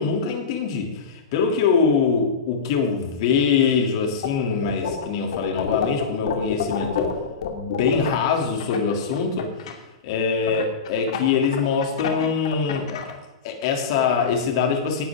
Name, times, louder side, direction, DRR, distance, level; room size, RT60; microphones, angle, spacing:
voice 1, 0.0-7.1 7.5-9.5 10.0-13.2 13.4-15.0, left 5 dB, 50° left, 3 dB, 3.2 m, -23 dB
sound 1, 4.2-5.0 5.3-9.7 10.5-13.1, left 8 dB, 70° left, 2.4 m, -28 dB
18.5 x 11.0 x 3.8 m, 1.1 s
hypercardioid pair, 150°, 3 cm